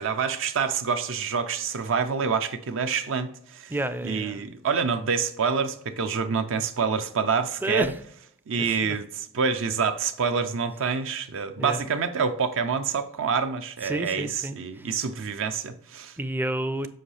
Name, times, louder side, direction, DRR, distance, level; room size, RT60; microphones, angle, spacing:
voice 1, 0.0-3.7 4.0-7.9 8.5-16.1, right 5 dB, 60° right, 0.5 m, -27 dB
voice 2, 3.7-4.4 7.6-8.0 8.6-9.0 11.6-11.8 13.8-14.9 16.2-16.9, right 1 dB, 10° right, 0.4 m, -30 dB
7.7 x 5.4 x 3.3 m
head